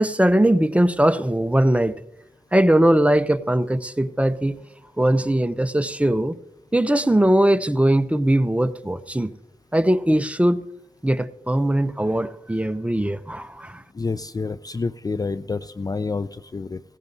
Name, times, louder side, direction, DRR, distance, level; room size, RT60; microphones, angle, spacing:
voice 1, 0.0-1.9 2.5-4.6 5.0-6.4 6.7-9.3 9.7-10.6 11.0-13.8, right 1 dB, 10° right, 11 dB, 0.6 m, -20 dB
voice 2, 13.9-16.8, left 4 dB, 30° left, 14 dB, 0.4 m, -28 dB
17.0 x 15.0 x 2.7 m, 0.89 s
wide cardioid pair, 70°, 13 cm